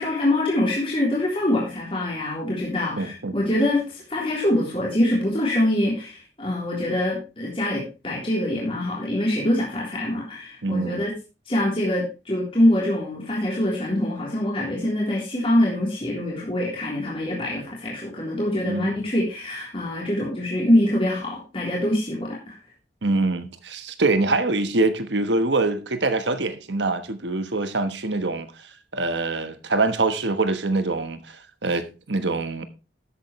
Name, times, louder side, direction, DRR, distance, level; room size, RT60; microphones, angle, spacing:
voice 1, 0.0-11.1 11.5-22.6, left 1 dB, 30° left, 3.5 m, -24 dB
voice 2, 3.0-3.3 10.6-11.0 18.7-18.9 23.0-28.5 28.9-31.4 31.6-32.7, right 3 dB, 85° right, 1.3 m, -24 dB
12.5 x 8.9 x 3.2 m
head